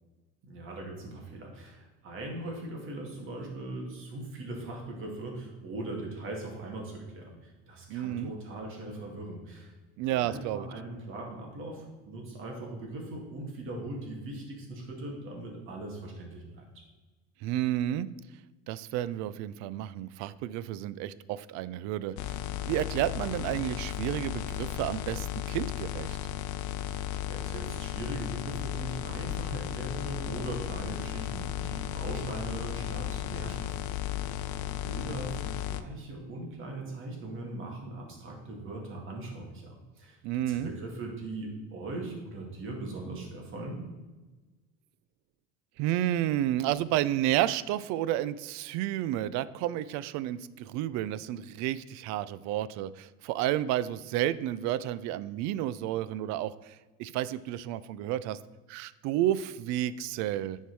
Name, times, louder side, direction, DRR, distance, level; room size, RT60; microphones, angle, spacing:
voice 1, 0.4-9.7 10.1-16.8 26.8-34.2 34.8-40.2 40.5-43.8, right 2 dB, 45° right, 0 dB, 2.2 m, -40 dB
voice 2, 7.9-8.3 10.0-10.7 17.4-18.1 18.7-22.2 22.6-26.2 40.2-40.7 45.8-58.4 58.7-60.6, right 13 dB, 65° right, 16 dB, 0.5 m, -31 dB
sound 1, 22.2-35.8, left 12 dB, 80° left, 0.6 m, -35 dB
10.0 x 4.6 x 4.7 m, 1.2 s
cardioid pair, 145°, 29 cm